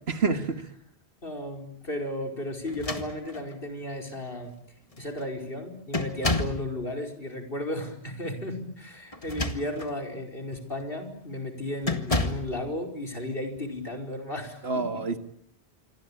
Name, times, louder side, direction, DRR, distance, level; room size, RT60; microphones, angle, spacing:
voice 1, 0.1-0.7 14.6-15.2, right 4 dB, 70° right, 9 dB, 2.1 m, -27 dB
voice 2, 1.2-4.5 5.0-14.9, left 1 dB, 55° left, 4 dB, 5.3 m, -34 dB
sound 1, 2.7-3.6 4.5-4.6 4.9-5.3 5.9-6.7 9.1-10.0 10.5-10.7 11.8-12.5, left 2 dB, 30° left, 2.0 m, -30 dB
27.0 x 24.0 x 8.7 m, 0.67 s
omnidirectional pair, 1.1 m